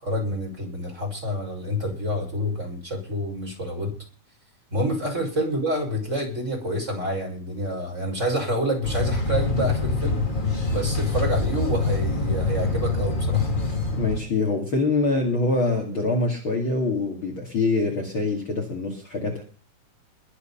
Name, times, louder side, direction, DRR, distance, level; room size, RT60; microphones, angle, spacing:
voice 1, 0.0-3.9 4.7-10.2 10.7-13.5, equal, 20° right, 1 dB, 6.3 m, -28 dB
sound 1, 8.8-14.2, left 3 dB, 15° left, 2.2 m, -25 dB
voice 2, 13.9-19.4, left 3 dB, 40° left, 1 dB, 2.9 m, -24 dB
22.0 x 8.2 x 5.7 m, 0.39 s
omnidirectional pair, 3.7 m